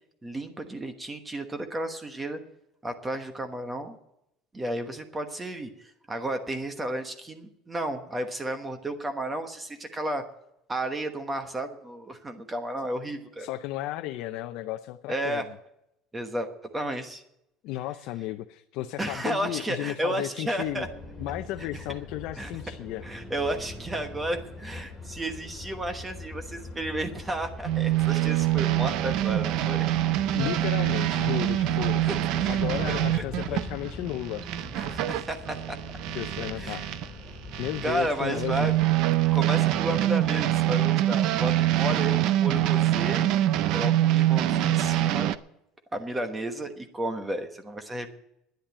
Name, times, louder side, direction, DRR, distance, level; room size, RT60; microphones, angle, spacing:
voice 1, 0.2-2.4 2.8-4.0 4.5-10.2 10.7-13.5 15.1-15.4 16.1-17.2 19.0-20.9 21.6-21.9 22.4-22.5 23.0-29.9 31.7-31.8 32.0-32.2 32.4-32.6 33.5-33.6 34.8-35.6 36.6-36.8 37.8-38.7 39.3-43.3 43.7-45.3 45.9-48.1, right 1 dB, 10° right, 6 dB, 1.1 m, -32 dB
voice 2, 13.4-15.6 17.6-20.9 21.2-23.0 30.3-32.1 32.5-34.5 36.1-36.8 37.3-38.7, left 14 dB, 55° left, 7 dB, 0.6 m, -34 dB
sound 1, 20.6-39.3, left 2 dB, 10° left, 3.4 m, -42 dB
sound 2, 27.6-37.1 37.5-45.4, right 13 dB, 50° right, 0.5 m, -25 dB
10.5 x 10.0 x 8.7 m, 0.81 s
cardioid pair, 175°, 0 cm